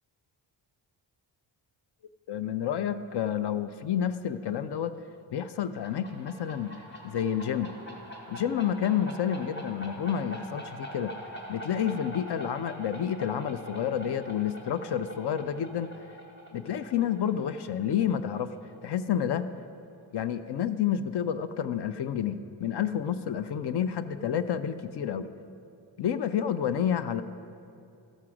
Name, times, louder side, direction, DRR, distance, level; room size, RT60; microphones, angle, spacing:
voice 1, 2.3-4.9 5.3-6.7 7.0-7.7 8.3-11.2 11.5-15.9 16.5-18.5 18.8-19.5 20.1-25.3 26.0-27.2, left 9 dB, 60° left, 12 dB, 0.5 m, -29 dB
sound 1, 5.6-19.0, equal, 25° left, 1.6 m, -44 dB
13.5 x 7.4 x 4.9 m, 2.6 s
cardioid pair, 100°, 47 cm